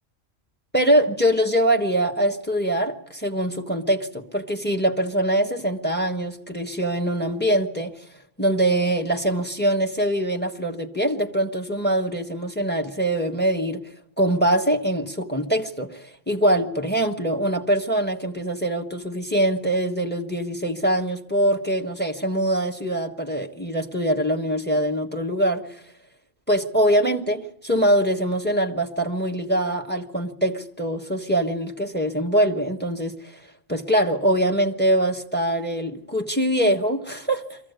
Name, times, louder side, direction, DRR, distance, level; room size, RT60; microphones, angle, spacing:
voice 1, 0.7-8.0 8.4-13.9 14.2-25.8 26.5-33.4 33.7-37.6, right 1 dB, 10° left, 1.3 m, -23 dB
23.0 x 15.0 x 8.2 m
omnidirectional pair, 1.3 m